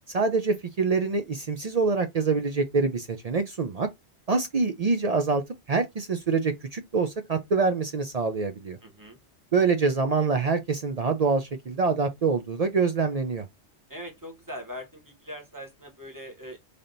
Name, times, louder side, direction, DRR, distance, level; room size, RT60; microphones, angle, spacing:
voice 1, 0.1-3.9 4.3-5.4 5.7-8.8 9.5-13.5, right 4 dB, 55° right, 0.4 m, -25 dB
voice 2, 8.8-9.2 13.9-16.6, equal, 15° right, 1.0 m, -41 dB
3.4 x 2.8 x 3.8 m
omnidirectional pair, 1.3 m